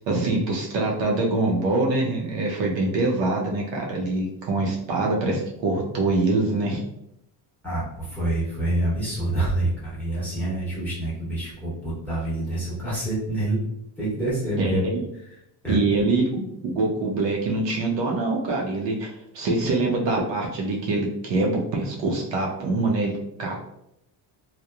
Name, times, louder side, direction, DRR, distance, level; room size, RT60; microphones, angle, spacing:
voice 1, 0.1-6.8 14.6-14.9 15.7-23.6, right 2 dB, 60° right, -1 dB, 0.6 m, -24 dB
voice 2, 7.6-13.6 14.0-14.8 15.3-15.4 15.6-15.8, right 1 dB, 5° left, -9 dB, 0.9 m, -27 dB
2.9 x 2.0 x 2.3 m, 0.78 s
cardioid pair, 180°, 49 cm